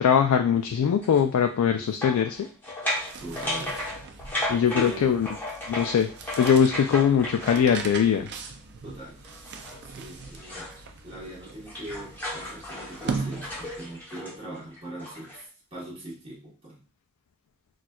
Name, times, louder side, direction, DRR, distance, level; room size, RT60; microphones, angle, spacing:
voice 1, 0.0-2.5 4.5-5.3 5.7-6.1 6.4-8.3, left 7 dB, 75° left, 5 dB, 0.3 m, -21 dB
sound 1, 1.0-1.2 2.0-8.0 9.2-10.8 11.2-15.4, left 1 dB, 10° left, 0.9 m, -35 dB
voice 2, 1.7-2.1 3.2-3.8 4.5-5.1 8.8-9.2 9.8-10.7 11.0-15.4 15.7-16.8, right 1 dB, 25° right, -5 dB, 1.0 m, -41 dB
sound 2, 2.8-14.0, right 4 dB, 50° right, 0.4 m, -39 dB
4.1 x 2.3 x 2.2 m, 0.37 s
head